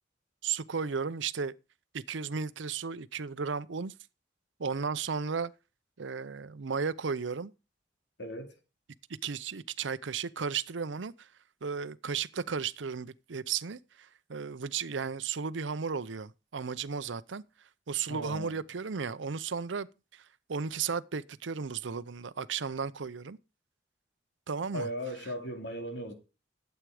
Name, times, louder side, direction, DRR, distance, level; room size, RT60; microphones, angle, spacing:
voice 1, 0.4-1.5 1.9-3.9 4.6-5.5 6.0-7.5 9.2-11.3 11.6-17.4 17.9-19.9 20.1-20.2 20.5-23.4 24.5-24.9, right 5 dB, 85° right, 0.7 m, -34 dB
voice 2, 8.2-8.5 18.1-18.6 24.7-26.1, equal, 70° left, 2.5 m, -37 dB
12.5 x 8.2 x 4.8 m
head